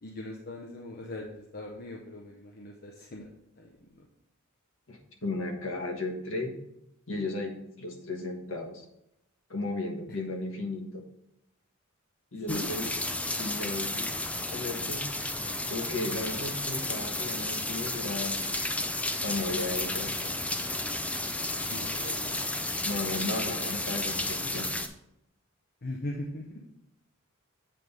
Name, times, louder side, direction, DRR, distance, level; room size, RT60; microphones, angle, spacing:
voice 1, 0.0-4.1 10.1-10.2 12.3-12.7 21.7-22.4 24.4-24.5 25.8-26.6, left 1 dB, 45° left, 0 dB, 0.7 m, -40 dB
voice 2, 4.9-6.5 7.1-8.8 9.5-11.0 12.3-12.9 13.3-14.1 14.5-15.0 15.7-18.4 19.2-20.4 22.8-24.7, left 2 dB, 65° left, 1 dB, 1.3 m, -35 dB
sound 1, 12.5-24.9, left 2 dB, 5° left, 0.4 m, -32 dB
7.6 x 3.4 x 5.3 m, 0.82 s
head